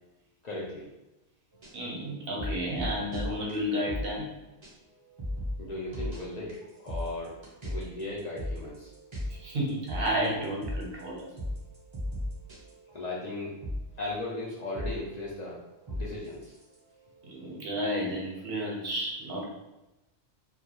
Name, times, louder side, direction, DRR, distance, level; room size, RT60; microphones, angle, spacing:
voice 1, 0.4-0.9 5.6-6.6 6.8-7.4 7.6-8.9 12.9-13.6 14.0-15.6 15.9-16.5, left 2 dB, 55° left, -7 dB, 0.5 m, -37 dB
sound 1, 1.5-4.4 4.6-4.7 5.0-13.3 13.6-18.4, left 1 dB, 35° right, 0.6 m, -38 dB
voice 2, 1.7-4.3 9.4-11.3 17.3-19.4, equal, 65° right, -3 dB, 0.9 m, -32 dB
2.3 x 2.2 x 2.9 m, 0.98 s
omnidirectional pair, 1.1 m